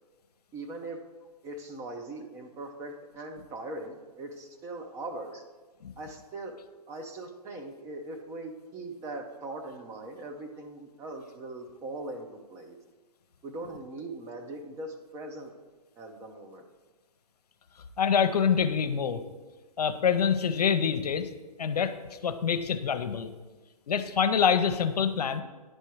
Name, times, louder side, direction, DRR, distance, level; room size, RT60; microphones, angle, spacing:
voice 1, 0.5-1.0 1.4-5.4 6.0-6.6 6.9-12.8 13.4-15.5 16.0-16.6, right 2 dB, 15° right, 4 dB, 0.5 m, -40 dB
voice 2, 18.0-19.2 19.8-21.3 21.6-21.9 22.2-23.3 23.9-25.4, left 7 dB, 80° left, 9 dB, 0.7 m, -25 dB
10.5 x 4.5 x 4.6 m, 1.2 s
hypercardioid pair, 145°, 20 cm